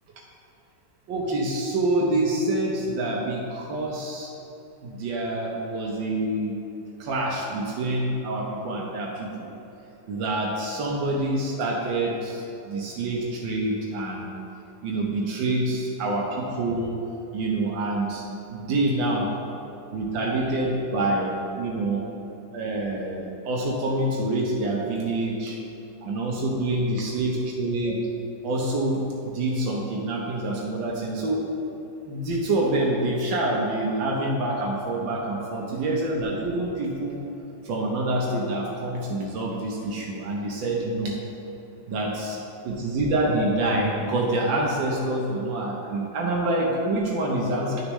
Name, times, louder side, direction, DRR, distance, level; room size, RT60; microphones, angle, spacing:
voice 1, 1.1-4.3 4.8-6.5 7.0-9.5 10.1-14.3 14.8-16.9 17.3-18.2 18.5-19.3 19.9-22.1 22.5-25.6 26.0-28.0 28.4-31.4 32.1-37.2 37.6-41.1 41.9-42.4 42.6-47.8, right 2 dB, 80° right, -2 dB, 1.6 m, -26 dB
11.0 x 6.6 x 3.1 m, 3.0 s
omnidirectional pair, 2.0 m